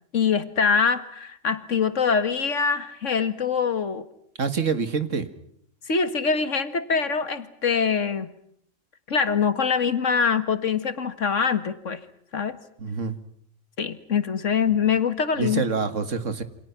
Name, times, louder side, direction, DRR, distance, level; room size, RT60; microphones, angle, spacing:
voice 1, 0.1-4.0 5.9-8.3 9.1-12.0 12.3-12.6 13.8-15.7, left 6 dB, 80° left, 11 dB, 2.0 m, -24 dB
voice 2, 4.4-5.3 12.8-13.2 15.4-16.4, right 5 dB, 80° right, 11 dB, 2.2 m, -26 dB
29.0 x 26.5 x 6.0 m, 0.69 s
omnidirectional pair, 1.3 m